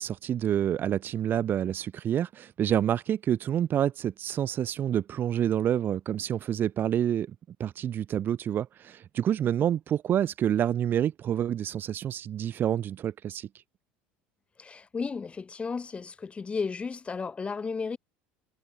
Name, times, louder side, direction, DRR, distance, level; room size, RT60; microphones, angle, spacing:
voice 1, 0.0-7.3 7.6-13.5, right 10 dB, 40° right, 2.1 m, -28 dB
voice 2, 14.6-18.0, left 5 dB, 25° left, 7.1 m, -34 dB
supercardioid pair, 100°, 5 cm